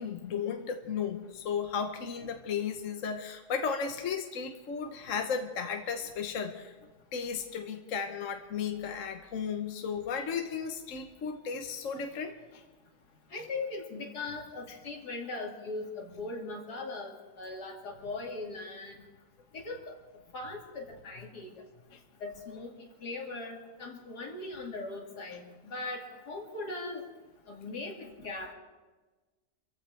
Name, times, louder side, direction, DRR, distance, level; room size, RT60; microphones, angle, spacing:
voice 1, 0.0-6.7 7.1-12.6 14.7-14.8 21.9-22.0, left 6 dB, 55° left, 5 dB, 1.3 m, -35 dB
voice 2, 13.3-18.9 19.5-19.8 20.3-21.5 22.2-22.7 23.0-27.0 27.5-28.5, left 3 dB, 80° left, 0 dB, 3.0 m, -39 dB
26.0 x 15.5 x 3.4 m, 1.3 s
omnidirectional pair, 1.7 m